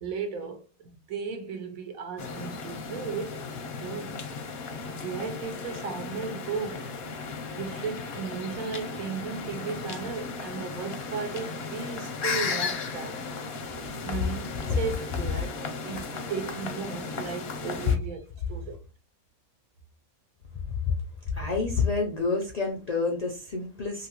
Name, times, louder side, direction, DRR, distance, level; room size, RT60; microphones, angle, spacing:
voice 1, 0.0-3.5 3.8-4.2 4.9-6.9 7.6-13.2 14.0-18.2 18.5-18.7, right 5 dB, 70° right, 1.2 m, -35 dB
sound 1, 2.2-18.0, left 4 dB, 60° left, 0.7 m, -35 dB
voice 2, 21.3-24.1, left 4 dB, 85° left, 0.3 m, -28 dB
2.9 x 2.8 x 2.9 m
omnidirectional pair, 1.5 m